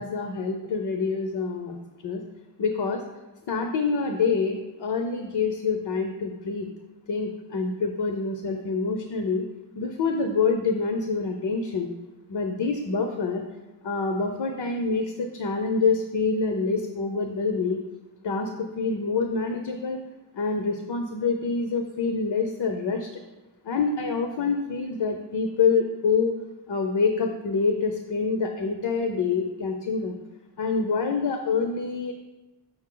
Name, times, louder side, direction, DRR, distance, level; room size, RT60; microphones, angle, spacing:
voice 1, 0.0-1.8 2.0-2.2 2.6-3.0 3.5-6.7 7.1-9.4 9.7-11.9 12.3-13.4 13.8-17.8 18.2-18.5 18.8-20.0 20.3-23.2 23.6-26.3 26.7-30.1 30.6-32.1, left 4 dB, 75° left, 4 dB, 0.8 m, -26 dB
7.0 x 6.3 x 3.8 m, 1.1 s
wide cardioid pair, 150°, 42 cm